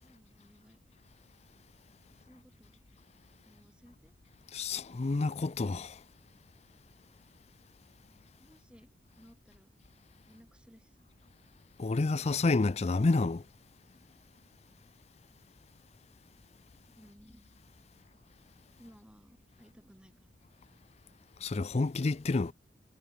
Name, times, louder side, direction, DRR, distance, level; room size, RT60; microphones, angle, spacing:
voice 1, 0.0-0.8 2.0-2.8 3.4-4.1 8.0-8.9 9.2-9.7 10.3-11.1 16.9-17.5 18.8-20.3, equal, 5° right, 6.8 m, -59 dB
voice 2, 4.5-5.9 11.8-13.4 21.4-22.5, left 3 dB, 35° left, 0.5 m, -29 dB
head